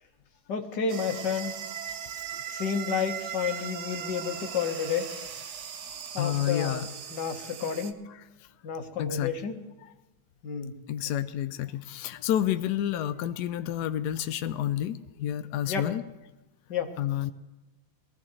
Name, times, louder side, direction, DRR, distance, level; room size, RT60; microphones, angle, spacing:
voice 1, 0.5-1.5 2.5-5.1 6.1-6.8 7.1-8.0 8.6-9.6 10.4-10.8 15.7-15.9 16.7-16.9, left 6 dB, 60° left, 5 dB, 1.8 m, -31 dB
sound 1, 0.9-7.9, right 9 dB, 60° right, 1.2 m, -38 dB
voice 2, 6.2-6.9 9.0-9.3 10.9-16.0 17.0-17.3, left 11 dB, 75° left, 10 dB, 0.9 m, -29 dB
22.0 x 14.5 x 3.2 m, 1.0 s
omnidirectional pair, 2.3 m